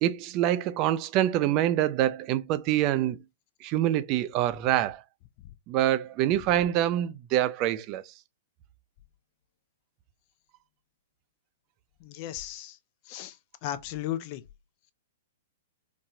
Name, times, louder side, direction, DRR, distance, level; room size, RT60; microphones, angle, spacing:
voice 1, 0.0-3.2 3.6-5.0 5.7-8.0, right 12 dB, 40° right, 0.3 m, -25 dB
voice 2, 12.0-12.8 13.1-13.4 13.6-14.4, left 12 dB, 45° left, 0.5 m, -35 dB
4.1 x 2.2 x 2.6 m
hypercardioid pair, 125°, 0 cm